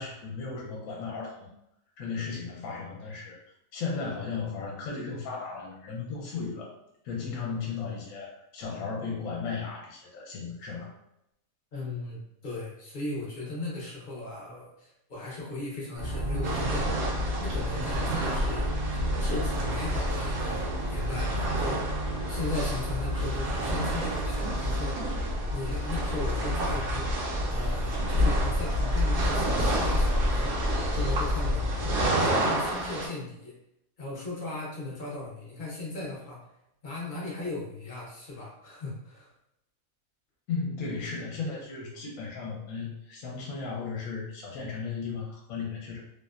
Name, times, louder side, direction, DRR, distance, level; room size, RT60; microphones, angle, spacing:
voice 1, 0.0-1.5 2.0-3.4 3.7-6.7 7.0-10.9 40.5-46.0, left 5 dB, 75° left, -2 dB, 1.0 m, -35 dB
voice 2, 11.7-17.0 17.4-18.7 19.2-22.0 22.3-25.1 25.5-27.1 27.5-30.6 30.9-31.9 32.2-33.5 34.0-36.4 36.8-39.3, left 2 dB, 50° left, -5 dB, 0.6 m, -37 dB
sound 1, 15.9-32.1, left 1 dB, 55° right, 0.6 m, -29 dB
sound 2, 16.4-33.1, right 2 dB, 80° right, 1.1 m, -32 dB
2.7 x 2.0 x 2.3 m, 0.81 s
omnidirectional pair, 1.5 m